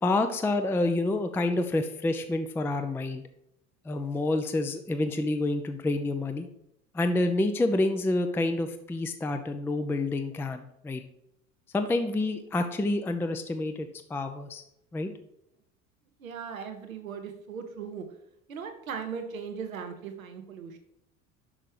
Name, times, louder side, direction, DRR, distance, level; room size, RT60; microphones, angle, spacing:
voice 1, 0.0-3.2 3.9-6.5 6.9-11.0 11.7-14.6 14.9-15.1, left 2 dB, 5° left, 7 dB, 0.4 m, -28 dB
voice 2, 16.2-18.0 18.5-20.8, right 6 dB, 85° right, 6 dB, 1.0 m, -38 dB
6.1 x 5.4 x 5.0 m, 0.78 s
figure-of-eight pair, 70°, 40 cm